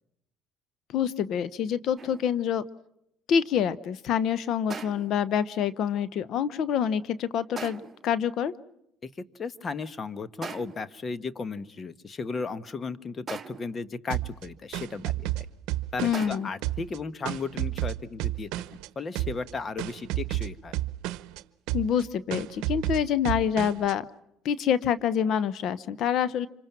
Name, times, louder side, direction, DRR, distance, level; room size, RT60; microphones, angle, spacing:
voice 1, 0.9-2.6 3.3-8.5 16.0-16.5 21.7-24.0 24.4-26.5, left 8 dB, 65° left, 16 dB, 0.9 m, -26 dB
sound 1, 2.0-2.4 4.7-5.3 7.6-8.1 10.4-11.0 13.3-13.8 16.1-16.7, right 5 dB, 30° right, 1.4 m, -40 dB
voice 2, 9.0-15.5 15.9-18.5 18.9-20.7, left 4 dB, 35° left, 15 dB, 1.2 m, -35 dB
sound 2, 14.1-16.4 16.6-18.9 19.2-19.5 19.8-21.4 21.7-22.0 22.3-23.9, right 16 dB, 80° right, 0.8 m, -31 dB
27.0 x 25.0 x 6.0 m, 0.79 s
supercardioid pair, 90°, 0 cm